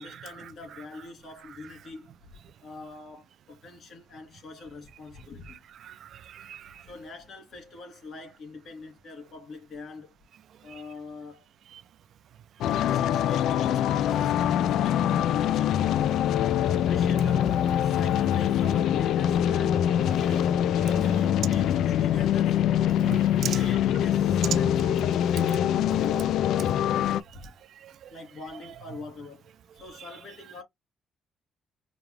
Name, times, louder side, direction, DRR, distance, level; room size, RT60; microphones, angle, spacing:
voice 1, 0.0-2.1 2.6-5.6 6.8-10.1 10.6-11.5 12.7-16.2 16.7-19.8 20.1-20.6 20.9-22.6 23.5-26.9 27.3-27.5 28.1-30.6, left 3 dB, 60° left, 3.1 m, -44 dB
voice 2, 5.5-6.9 11.7-11.8 20.9-21.0 23.0-23.6 27.3-27.4 27.8-28.1, right 10 dB, 70° right, 0.4 m, -40 dB
sound 1, 12.6-27.2, left 10 dB, 80° left, 0.3 m, -24 dB
5.1 x 2.3 x 3.2 m
cardioid pair, 90°, 0 cm